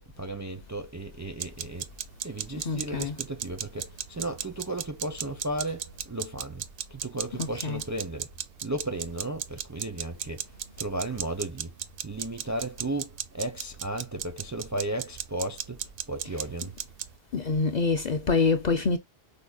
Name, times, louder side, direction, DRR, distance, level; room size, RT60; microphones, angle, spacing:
voice 1, 0.0-1.9 2.2-6.7 6.9-8.3 8.6-10.5 10.8-11.7 12.0-16.7, right 2 dB, 25° right, 0.4 m, -34 dB
sound 1, 1.4-17.2, right 9 dB, 65° right, 0.7 m, -37 dB
voice 2, 2.6-3.2 7.4-7.8 17.3-19.0, left 4 dB, 50° left, 0.6 m, -26 dB
5.1 x 2.1 x 2.2 m
omnidirectional pair, 1.1 m